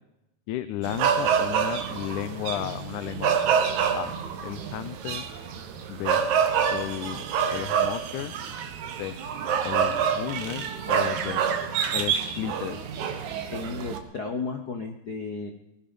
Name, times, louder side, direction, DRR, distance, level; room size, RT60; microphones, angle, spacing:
voice 1, 0.5-3.4 3.9-4.1 4.4-5.3 5.9-6.2 6.7-7.2 7.5-8.3 9.0-9.2 9.6-11.4 11.9-12.8, left 13 dB, 90° left, 10 dB, 2.2 m, -33 dB
sound 1, 0.8-14.0, right 7 dB, 75° right, 2.6 m, -27 dB
voice 2, 13.5-15.5, left 4 dB, 65° left, 4 dB, 0.9 m, -33 dB
19.5 x 12.0 x 5.3 m, 0.88 s
omnidirectional pair, 3.4 m